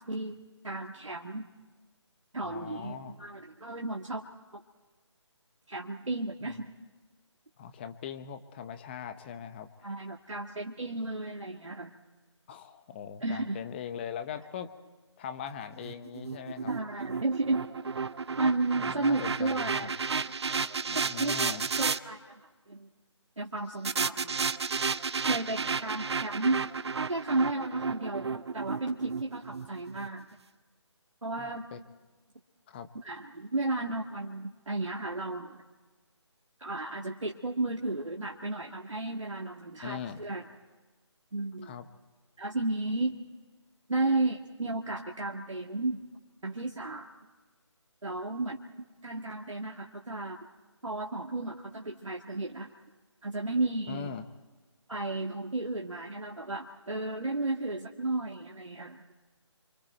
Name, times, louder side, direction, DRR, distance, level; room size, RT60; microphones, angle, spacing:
voice 1, 0.0-1.4 2.3-4.2 4.5-4.6 5.7-6.7 9.8-11.9 13.2-13.6 16.7-17.6 18.4-19.9 21.0-21.4 21.8-22.9 23.4-24.4 25.3-26.6 27.1-30.3 31.2-31.7 33.0-35.6 36.6-40.5 41.3-41.8 42.4-43.2 43.9-46.0 46.4-47.1 48.0-48.6 49.0-50.4 50.8-52.7 53.2-54.1 54.9-59.0, right 2 dB, 85° right, 0 dB, 1.8 m, -33 dB
voice 2, 2.4-3.2 6.5-6.6 7.6-9.7 12.5-14.7 15.2-16.7 18.7-19.9 20.9-21.7 31.4-31.8 32.7-32.9 39.8-40.2 41.6-41.9 53.9-54.3, left 8 dB, 20° left, 9 dB, 1.0 m, -41 dB
sound 1, 15.8-22.0 23.8-30.1, right 5 dB, 60° right, 0.8 m, -33 dB
28.5 x 25.0 x 4.5 m, 1.3 s
figure-of-eight pair, 155°, 16 cm